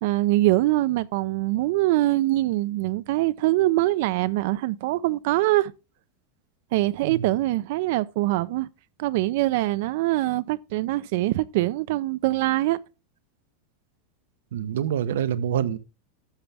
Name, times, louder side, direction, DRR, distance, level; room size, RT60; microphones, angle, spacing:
voice 1, 0.0-5.7 6.7-8.7 9.0-12.8, right 17 dB, 60° right, 0.4 m, -23 dB
voice 2, 7.0-7.3 14.5-15.8, right 9 dB, 85° right, 0.8 m, -26 dB
11.5 x 7.0 x 3.4 m
supercardioid pair, 155°, 0 cm